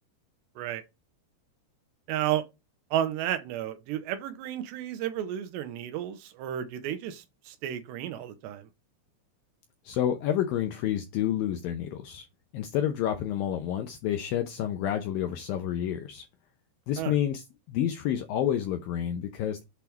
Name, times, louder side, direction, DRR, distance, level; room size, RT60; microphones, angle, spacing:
voice 1, 2.1-2.4 2.9-8.7 17.0-17.1, right 11 dB, 85° right, 3.0 m, -32 dB
voice 2, 9.8-12.3 12.5-16.3 16.9-19.6, left 10 dB, 85° left, 2.0 m, -29 dB
8.3 x 3.6 x 4.5 m
omnidirectional pair, 4.9 m